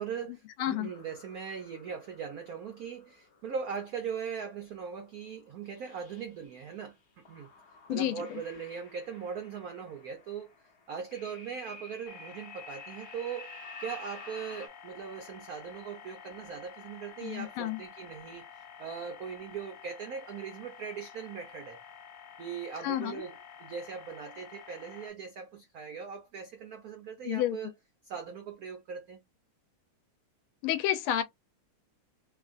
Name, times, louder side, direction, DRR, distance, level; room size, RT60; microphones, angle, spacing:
voice 1, 0.0-7.5 7.9-10.5 10.9-21.8 22.4-27.7 28.0-29.2, right 6 dB, 90° right, 0.8 m, -40 dB
sound 1, 0.8-4.0 4.8-5.0 5.4-6.7 7.2-14.7, left 3 dB, 50° left, 0.8 m, -51 dB
voice 2, 7.9-8.4 17.2-17.8 22.8-23.2 27.2-27.6 30.6-31.2, left 12 dB, 85° left, 1.5 m, -30 dB
sound 2, 12.1-25.1, left 7 dB, 70° left, 1.2 m, -50 dB
3.5 x 2.4 x 2.4 m
omnidirectional pair, 2.3 m